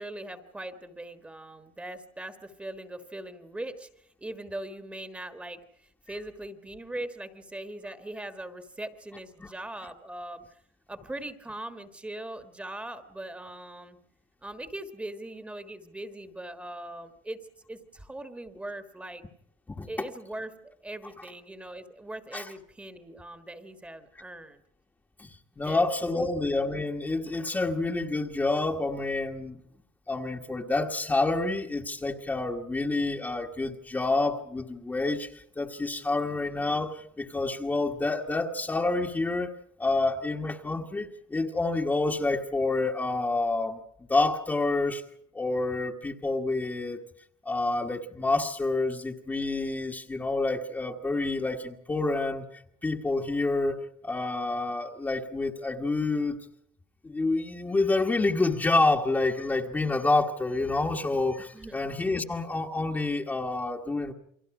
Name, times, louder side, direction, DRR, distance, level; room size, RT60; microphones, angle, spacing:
voice 1, 0.0-3.9 4.2-10.6 10.9-14.0 14.4-17.4 17.7-19.2 19.9-24.6 25.6-26.3 61.5-61.8, right 1 dB, 10° right, 9 dB, 1.5 m, -40 dB
voice 2, 25.2-29.6 30.1-39.5 39.8-43.8 44.1-45.0 45.3-47.0 47.4-52.4 52.8-53.8 54.0-56.4 57.0-64.1, left 3 dB, 10° left, 2 dB, 1.4 m, -28 dB
29.5 x 23.0 x 4.9 m, 0.68 s
cardioid pair, 140°, 15 cm